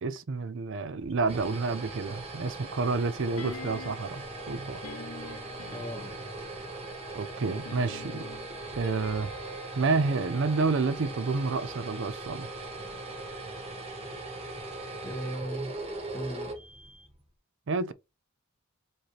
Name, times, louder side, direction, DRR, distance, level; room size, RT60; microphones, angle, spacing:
voice 1, 0.0-4.8 7.1-8.2 8.8-9.3 9.7-12.5 17.7-17.9, right 4 dB, 60° right, 0.5 m, -29 dB
sound 1, 1.0-17.2, right 2 dB, 30° right, 1.1 m, -40 dB
sound 2, 3.4-4.2 4.8-6.5 7.5-11.7 12.0-12.1, left 3 dB, 75° left, 0.6 m, -45 dB
voice 2, 5.7-6.2 15.0-16.5, right 1 dB, 15° left, 0.6 m, -38 dB
4.8 x 3.0 x 3.1 m
head